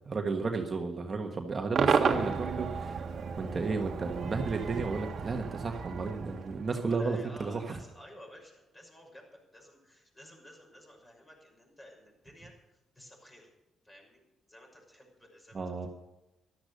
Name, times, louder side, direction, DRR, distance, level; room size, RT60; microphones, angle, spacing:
voice 1, 0.0-3.1 3.4-7.8 15.5-15.9, right 4 dB, 35° right, 3 dB, 1.4 m, -33 dB
Cheering / Crowd / Fireworks, 1.7-7.0, right 5 dB, 55° right, 1.6 m, -32 dB
voice 2, 6.7-13.5 13.8-14.2 14.5-15.9, equal, 20° left, 1 dB, 6.1 m, -53 dB
13.5 x 12.5 x 6.6 m, 0.99 s
cardioid pair, 90°, 0 cm